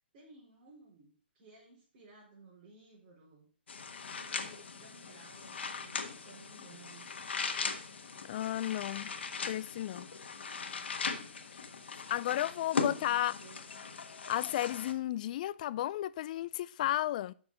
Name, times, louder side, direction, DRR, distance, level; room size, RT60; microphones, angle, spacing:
voice 1, 0.0-3.5 3.9-7.1 12.4-13.7, right 3 dB, 40° right, 4.6 m, -58 dB
sound 1, 3.7-14.9, left 5 dB, 70° left, 1.3 m, -39 dB
voice 2, 8.3-9.1 9.4-10.1 11.6-11.7 12.1-13.4 14.3-17.3, left 13 dB, 45° left, 0.4 m, -33 dB
7.2 x 6.3 x 6.0 m
hypercardioid pair, 135°, 6 cm